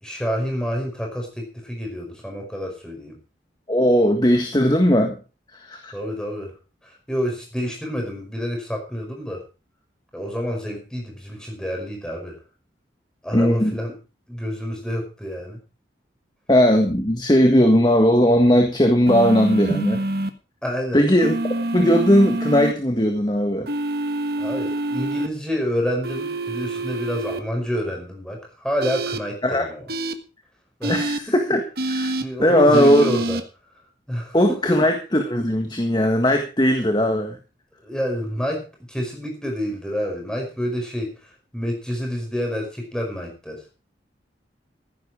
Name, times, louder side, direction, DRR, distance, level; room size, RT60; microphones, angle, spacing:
voice 1, 0.0-3.2 5.9-6.5 6.8-9.4 10.1-12.4 13.2-13.9 14.3-15.6 20.6-21.1 24.4-29.8 30.8-31.0 31.3-31.4 32.2-33.4 34.1-34.8 37.8-41.1 41.5-43.6, equal, 5° left, 1 dB, 5.2 m, -28 dB
voice 2, 3.7-5.2 5.5-5.9 13.3-13.8 16.5-20.0 20.9-21.3 21.7-23.7 29.4-29.7 30.9-32.1 32.4-33.1 34.3-37.4, equal, 25° left, 5 dB, 1.6 m, -18 dB
sound 1, 19.1-20.3 21.2-22.7 23.7-25.3 26.0-27.4 28.8-29.2 29.9-30.1 30.8-31.2 31.8-32.2 32.7-33.4, right 1 dB, 60° right, 1.5 m, -26 dB
15.5 x 10.5 x 4.8 m, 0.33 s
head